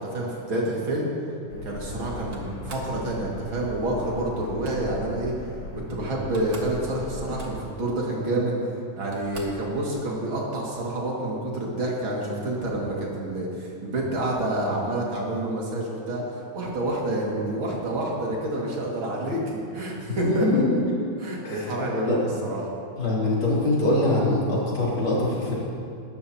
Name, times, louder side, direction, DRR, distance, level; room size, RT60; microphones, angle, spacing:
voice 1, 0.1-1.1 1.6-5.3 5.9-8.6 9.0-20.6 21.2-22.6, right 1 dB, 75° right, -4 dB, 3.0 m, -28 dB
sound 1, 1.5-7.5, left 1 dB, 60° left, 1.9 m, -38 dB
Slam, 2.3-3.0 4.4-4.8 5.9-6.0 6.2-6.8 7.1-7.8 8.6-8.7 9.1-9.7, right 2 dB, 50° right, 1.8 m, -43 dB
voice 2, 20.1-20.6 21.4-21.7 22.1-22.2 23.0-25.5, left 2 dB, 80° left, -7 dB, 3.9 m, -23 dB
19.0 x 12.0 x 2.9 m, 2.5 s
omnidirectional pair, 2.2 m